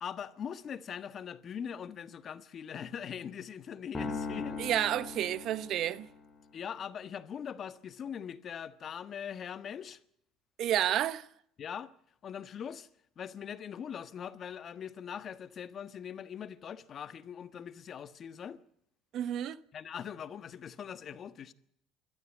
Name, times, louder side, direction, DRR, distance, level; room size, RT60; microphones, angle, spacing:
voice 1, 0.0-4.6 6.5-10.0 11.6-11.9 12.2-12.9 13.2-18.6 19.7-21.5, left 8 dB, 45° left, 1.3 m, -41 dB
sound 1, 3.9-6.3, left 4 dB, 10° left, 6.4 m, -39 dB
voice 2, 4.6-6.1 10.6-11.2 19.1-19.6, right 11 dB, 60° right, 0.9 m, -30 dB
28.5 x 13.0 x 8.4 m
supercardioid pair, 95°, 0 cm